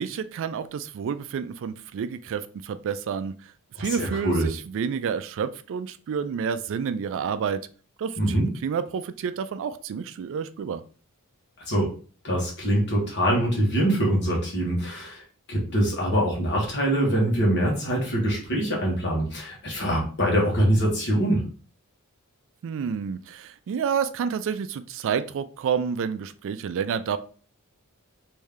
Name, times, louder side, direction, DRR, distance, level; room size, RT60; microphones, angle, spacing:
voice 1, 0.0-3.3 3.8-7.6 8.0-10.8 22.6-27.2, right 6 dB, 60° right, 11 dB, 0.3 m, -29 dB
voice 2, 3.8-4.5 8.2-8.5 11.7-11.9 12.2-15.2 15.5-21.4, right 1 dB, 55° left, -2 dB, 1.4 m, -24 dB
3.2 x 2.7 x 3.5 m, 0.40 s
head